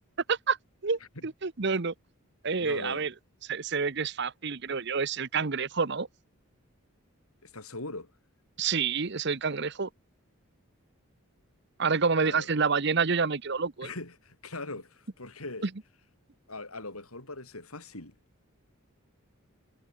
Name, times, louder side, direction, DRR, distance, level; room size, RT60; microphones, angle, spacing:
voice 1, 0.8-1.9 2.4-3.1 3.4-6.1 8.6-9.9 11.8-13.9, right 5 dB, 55° right, 0.9 m, -28 dB
voice 2, 2.6-3.1 7.4-8.1 12.2-12.5 13.8-15.7 16.5-18.1, left 2 dB, 90° left, 7.6 m, -41 dB
head